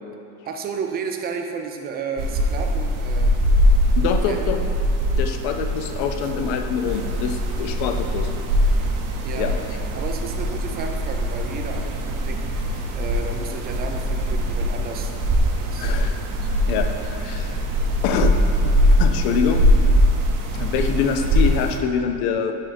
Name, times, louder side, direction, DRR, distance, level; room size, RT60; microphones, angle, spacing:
voice 1, 0.4-3.4 4.3-4.5 9.2-9.5 9.9-16.1 16.4-16.5, right 5 dB, 25° right, 4 dB, 0.3 m, -33 dB
sound 1, 2.2-21.8, equal, 55° right, 0.7 m, -22 dB
voice 2, 4.0-4.6 5.2-8.3 9.4-9.5 15.8-16.2 16.7-17.6 18.0-18.3 18.6-19.6 20.5-22.5, left 7 dB, 75° left, 6 dB, 0.6 m, -25 dB
5.2 x 4.4 x 4.1 m, 2.7 s
cardioid pair, 145°, 39 cm